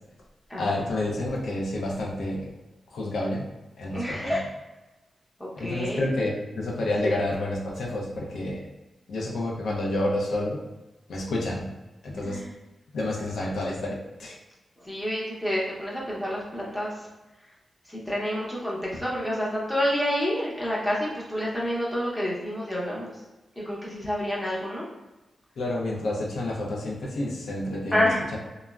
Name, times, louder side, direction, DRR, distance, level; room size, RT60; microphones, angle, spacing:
voice 1, 0.6-2.5 2.9-3.4 3.8-4.4 5.5-8.6 9.1-10.6 11.1-11.7 12.0-12.4 12.9-14.4 25.6-28.4, left 1 dB, 85° left, -2 dB, 0.5 m, -29 dB
voice 2, 3.9-4.4 5.4-6.0 7.0-7.2 12.2-12.5 14.9-16.9 17.9-23.1 23.6-24.8 27.9-28.3, equal, 10° left, -5 dB, 0.7 m, -28 dB
3.4 x 2.0 x 2.3 m, 1.0 s
wide cardioid pair, 130°, 0 cm